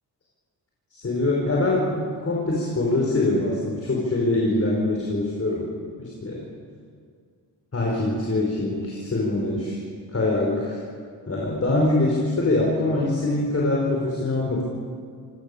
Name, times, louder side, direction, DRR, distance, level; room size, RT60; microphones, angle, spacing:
voice 1, 0.9-5.7 6.0-6.5 7.7-9.8 10.1-10.8 11.2-14.6, left 2 dB, 35° left, -3 dB, 5.2 m, -24 dB
27.5 x 18.5 x 7.0 m, 2.1 s
cardioid pair, 105°, 42 cm